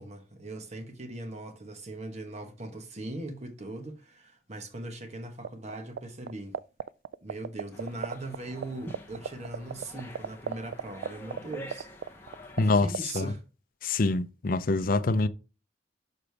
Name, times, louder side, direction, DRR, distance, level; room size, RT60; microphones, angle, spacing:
voice 1, 0.0-6.6 7.2-11.9 12.3-13.4, right 2 dB, 40° right, 1.2 m, -40 dB
sound 1, 5.4-6.0 6.3-8.4 8.6-8.7 8.9-12.6 12.9-13.2, right 7 dB, 80° right, 0.3 m, -31 dB
sound 2, 7.7-12.8, left 1 dB, 10° left, 1.0 m, -47 dB
voice 2, 12.6-13.3 13.8-15.3, left 3 dB, 50° left, 0.5 m, -25 dB
6.6 x 4.9 x 3.4 m
head